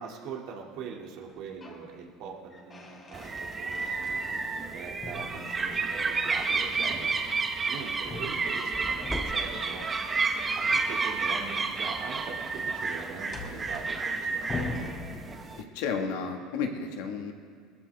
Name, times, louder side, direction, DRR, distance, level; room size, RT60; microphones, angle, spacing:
voice 1, 0.0-7.1 7.7-9.9 10.5-14.7, right 6 dB, 65° right, 0 dB, 2.5 m, -42 dB
sound 1, 1.2-1.9 2.2-4.7 5.0-6.2 8.0-9.6 11.6-15.8, left 3 dB, 30° left, 3.3 m, -42 dB
sound 2, 3.1-15.6, right 4 dB, 25° right, 1.2 m, -31 dB
sound 3, 5.0-5.1 5.5-5.7 5.9-7.0 8.7-10.0, equal, 5° left, 1.6 m, -40 dB
voice 2, 15.7-17.3, left 5 dB, 75° left, 4 dB, 1.7 m, -32 dB
20.0 x 15.0 x 3.5 m, 2.1 s
supercardioid pair, 105°, 0 cm